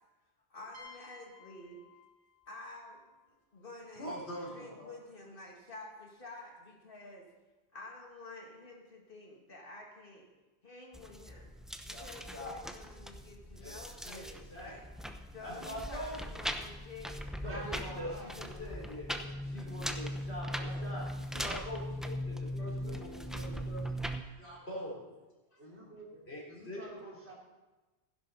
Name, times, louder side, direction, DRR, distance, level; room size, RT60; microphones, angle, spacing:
voice 1, 0.5-1.8 2.5-3.0 3.3-4.2 4.5-7.3 7.7-10.3 10.6-11.5 11.9-14.9 15.3-17.2 24.3-24.5 25.5-25.6, left 2 dB, 55° left, -1 dB, 2.5 m, -50 dB
sound 1, 0.7-4.4, left 4 dB, 55° right, 1.8 m, -58 dB
voice 2, 4.0-4.9 11.9-12.6 13.2-15.0 15.4-16.2 17.4-23.9 24.4-25.0 26.3-26.9 27.3-27.4, equal, 70° left, -4 dB, 4.2 m, -44 dB
sound 2, 10.9-24.2, equal, ahead, 0.5 m, -40 dB
voice 3, 17.4-18.8 19.1-19.2 20.5-20.8 22.5-23.1 24.9-25.0 25.6-27.3, right 1 dB, 80° right, -3 dB, 3.5 m, -48 dB
15.5 x 11.0 x 4.2 m, 1.2 s
omnidirectional pair, 1.1 m